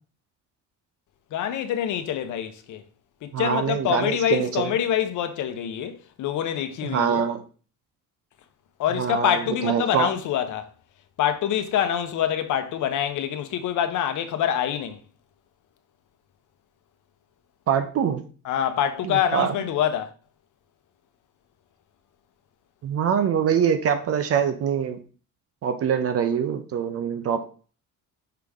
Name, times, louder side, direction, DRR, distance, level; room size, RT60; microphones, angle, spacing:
voice 1, 1.3-2.8 3.2-7.2 8.8-10.7 11.2-15.0 18.4-20.1, left 9 dB, 55° left, 0.9 m, -25 dB
voice 2, 3.3-4.7 6.8-7.4 9.0-10.1 17.7-18.2 19.0-19.5 22.8-25.0 25.6-27.4, right 8 dB, 45° right, 0.6 m, -24 dB
5.8 x 5.1 x 3.5 m
cardioid pair, 160°, 35 cm